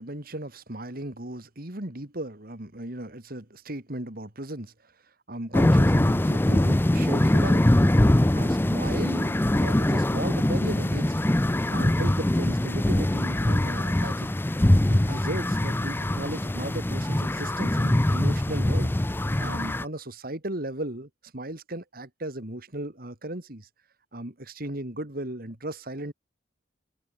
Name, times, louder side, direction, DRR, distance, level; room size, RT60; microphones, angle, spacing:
voice 1, 0.0-4.9 5.3-7.9 8.3-11.2 11.7-14.3 14.9-18.9 19.4-23.7 24.1-26.1, right 1 dB, 55° right, 3.0 m, -36 dB
sound 1, 5.5-19.8, left 1 dB, 10° left, 0.5 m, -23 dB
open air
head